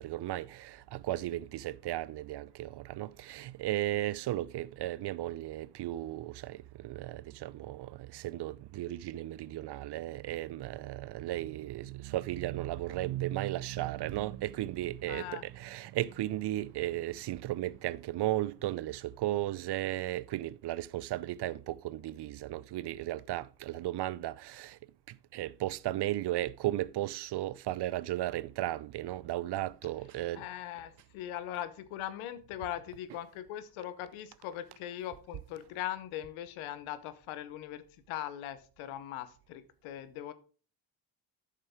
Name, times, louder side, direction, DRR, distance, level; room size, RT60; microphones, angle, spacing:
voice 1, 0.0-24.8 25.1-30.5 33.1-33.2, right 15 dB, 60° right, 0.6 m, -35 dB
voice 2, 15.1-15.4 30.3-40.3, left 12 dB, 90° left, 0.9 m, -40 dB
9.2 x 6.6 x 3.5 m
supercardioid pair, 60°, 47 cm